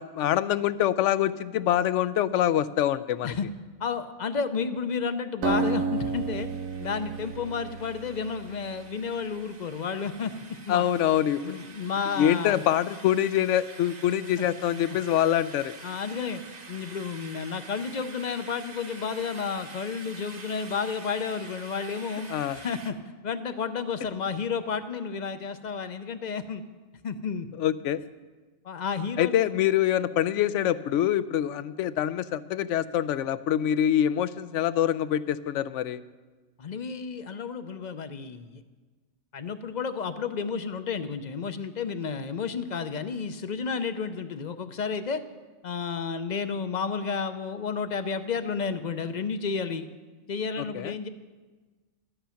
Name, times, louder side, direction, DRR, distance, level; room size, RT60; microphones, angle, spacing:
voice 1, 0.0-3.3 10.7-11.6 12.2-15.7 22.3-22.6 27.6-28.0 29.2-36.0 50.6-51.0, left 11 dB, 70° left, 15 dB, 0.8 m, -25 dB
voice 2, 3.8-6.5 6.8-10.3 10.7-10.8 11.4-12.6 14.4-14.5 15.8-16.4 16.7-23.0 23.2-26.6 27.0-27.5 28.6-29.5 36.6-38.6 39.3-45.2 45.6-49.9 50.3-51.1, left 5 dB, 45° left, 10 dB, 0.6 m, -31 dB
Acoustic guitar, 5.4-9.0, right 4 dB, 85° right, 1.2 m, -31 dB
sound 1, 6.0-22.9, right 3 dB, 35° right, 0.9 m, -47 dB
13.5 x 11.0 x 5.8 m, 1.3 s
omnidirectional pair, 1.4 m